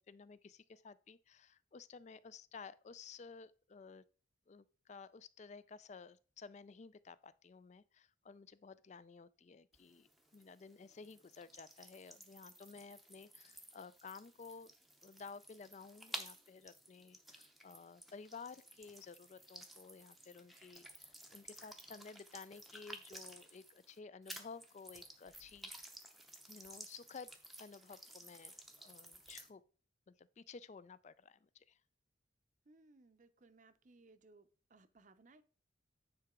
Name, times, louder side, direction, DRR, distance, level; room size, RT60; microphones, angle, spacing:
voice 1, 0.0-4.0 4.5-14.7 15.0-25.7 26.5-27.3 27.6-29.6 30.1-31.8, left 5 dB, 35° left, 0.3 m, -54 dB
sound 1, 9.7-24.0 24.3-29.5, right 1 dB, ahead, 0.7 m, -54 dB
voice 2, 32.7-35.4, right 3 dB, 40° right, 0.6 m, -64 dB
9.6 x 4.6 x 3.6 m
head